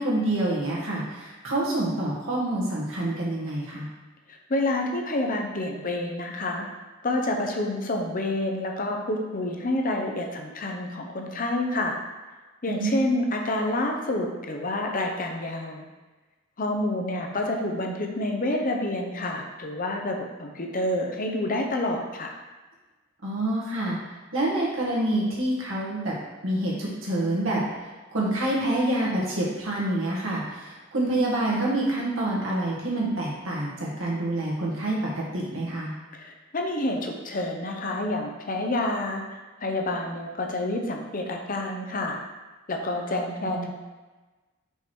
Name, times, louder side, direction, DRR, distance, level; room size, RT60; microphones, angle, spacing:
voice 1, 0.0-3.9 12.7-13.1 23.2-24.0 24.3-26.1 26.4-27.6 28.1-35.9 43.5-43.7, right 1 dB, 85° right, -5 dB, 1.9 m, -27 dB
voice 2, 4.3-6.6 7.0-12.0 12.6-15.9 16.6-22.3 36.1-42.2 42.7-43.7, left 1 dB, 45° left, 2 dB, 0.8 m, -28 dB
5.6 x 4.8 x 4.6 m, 1.2 s
head